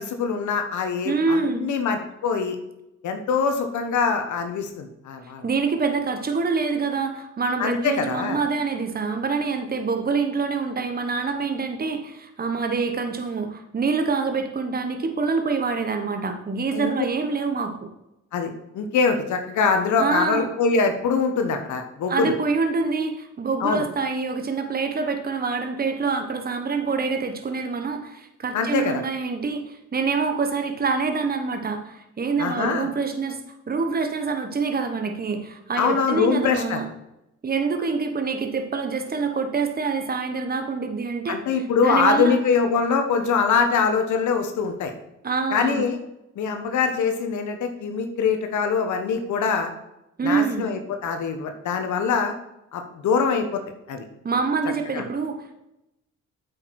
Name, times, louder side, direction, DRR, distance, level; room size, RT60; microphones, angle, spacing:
voice 1, 0.0-2.6 3.0-5.4 7.6-8.4 16.7-16.9 18.3-22.3 23.6-23.8 28.5-29.0 32.4-32.9 35.8-36.8 41.3-44.9 45.5-46.0 46.4-49.7 50.2-52.3 52.7-53.6 53.9-54.1 54.9-55.0, left 5 dB, 75° left, 6 dB, 1.2 m, -23 dB
voice 2, 1.0-1.7 5.4-17.9 20.0-20.5 22.1-33.4 33.7-36.8 37.4-41.4 41.8-42.4 45.2-45.8 50.2-50.7 54.2-55.5, right 4 dB, 30° right, 6 dB, 1.2 m, -26 dB
8.5 x 6.5 x 4.8 m, 0.88 s
cardioid pair, 90°, 30 cm